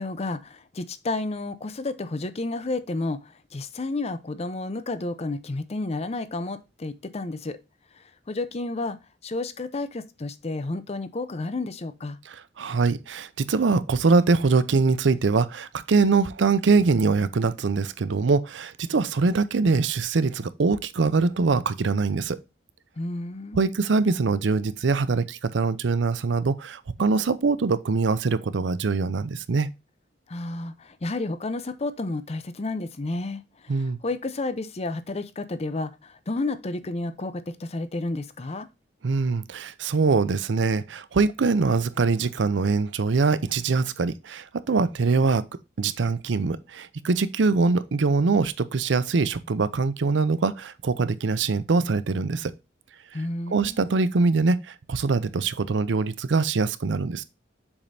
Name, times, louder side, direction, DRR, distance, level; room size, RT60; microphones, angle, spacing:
voice 1, 0.0-3.2 3.5-7.6 8.3-9.0 9.2-12.2 23.0-23.6 30.3-33.4 33.7-38.7 53.1-53.8, left 2 dB, 35° left, 0.6 m, -31 dB
voice 2, 12.3-22.4 23.5-29.7 33.7-34.0 39.0-45.4 45.8-52.5 53.5-57.2, right 4 dB, 80° right, 0.5 m, -23 dB
7.1 x 5.1 x 2.6 m
head